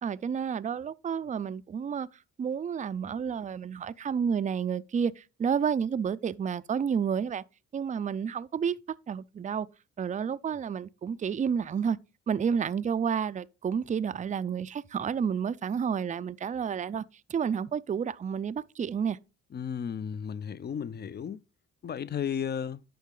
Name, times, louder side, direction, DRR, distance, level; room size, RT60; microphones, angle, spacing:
voice 1, 0.0-2.1 2.4-7.4 7.7-8.8 9.1-9.7 10.0-12.0 12.3-17.0 17.3-19.2, right 7 dB, 25° right, 0.4 m, -30 dB
voice 2, 19.5-21.4 21.8-22.8, left 8 dB, 35° left, 0.5 m, -34 dB
10.0 x 5.7 x 3.8 m
cardioid pair, 90°, 30 cm